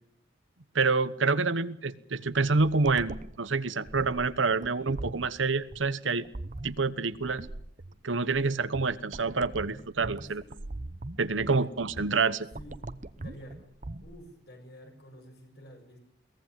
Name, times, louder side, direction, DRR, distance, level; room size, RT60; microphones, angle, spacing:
voice 1, 0.7-6.3 6.6-7.5 8.0-10.4 11.2-12.5, right 4 dB, 80° right, 14 dB, 1.1 m, -27 dB
sound 1, 2.3-14.2, right 2 dB, 40° right, 0.9 m, -42 dB
voice 2, 11.3-11.7 12.5-12.8 13.2-13.7 14.0-16.0, equal, 60° left, 4 dB, 7.0 m, -49 dB
22.5 x 18.0 x 7.5 m, 0.67 s
head